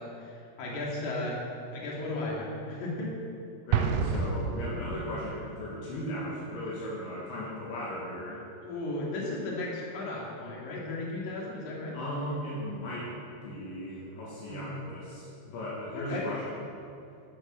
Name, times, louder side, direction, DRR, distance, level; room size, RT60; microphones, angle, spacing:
voice 1, 0.0-1.4 1.7-3.1 8.6-12.0 14.5-14.8 15.9-16.3, left 2 dB, 45° left, -4 dB, 3.6 m, -35 dB
voice 2, 3.6-8.4 11.9-16.6, left 1 dB, 75° left, -7 dB, 4.5 m, -37 dB
Explosion, 3.7-5.4, right 6 dB, 80° right, 2.4 m, -29 dB
13.0 x 11.0 x 6.6 m, 2.6 s
omnidirectional pair, 5.4 m